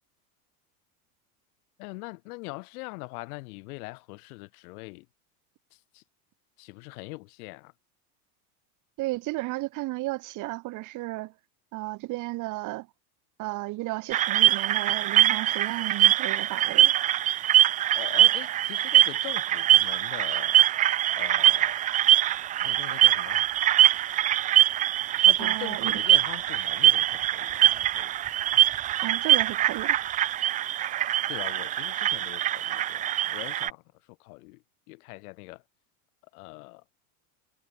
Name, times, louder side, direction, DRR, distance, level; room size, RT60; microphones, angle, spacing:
voice 1, 1.8-5.1 5.7-6.0 6.6-7.7 17.9-20.6 21.2-21.8 22.6-23.5 25.2-28.1 31.3-33.8 34.2-34.6 34.9-35.6 36.3-36.8, left 25 dB, 70° left, 5.0 m, -42 dB
voice 2, 9.0-11.3 11.7-12.9 13.4-16.9 25.4-26.0 29.0-30.0, right 20 dB, 40° right, 1.0 m, -33 dB
sound 1, 14.1-33.7, right 12 dB, 20° right, 0.3 m, -23 dB
supercardioid pair, 140°, 45 cm